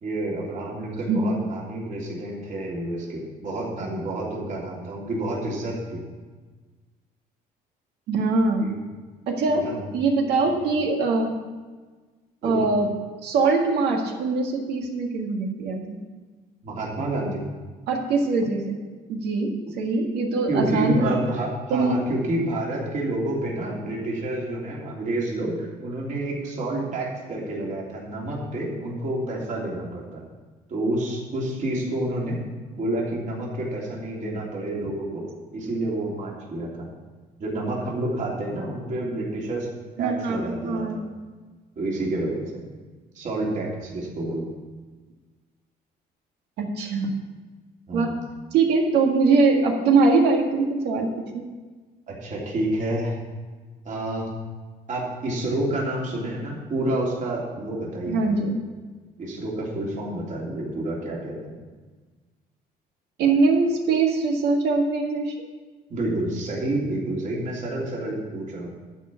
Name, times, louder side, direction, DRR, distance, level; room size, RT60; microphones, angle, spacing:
voice 1, 0.0-6.0 8.6-8.8 9.5-9.9 10.4-10.5 12.4-12.6 16.6-17.4 20.5-30.2 30.7-32.4 32.7-35.2 35.5-36.7 37.4-39.7 40.0-41.0 41.8-42.4 43.1-44.4 47.9-48.1 52.1-53.2 53.8-54.2 54.9-58.4 59.2-61.6 65.9-68.7, right 1 dB, 50° right, -4 dB, 3.1 m, -29 dB
voice 2, 8.1-8.6 9.3-9.6 9.9-11.4 12.4-12.9 13.2-16.0 17.9-18.8 19.1-21.2 21.7-22.0 40.0-41.0 46.6-47.2 47.9-48.2 48.5-51.1 58.1-58.6 63.2-65.3, right 3 dB, 80° right, 2 dB, 1.8 m, -22 dB
12.0 x 4.6 x 8.3 m, 1.4 s
cardioid pair, 110°, 17 cm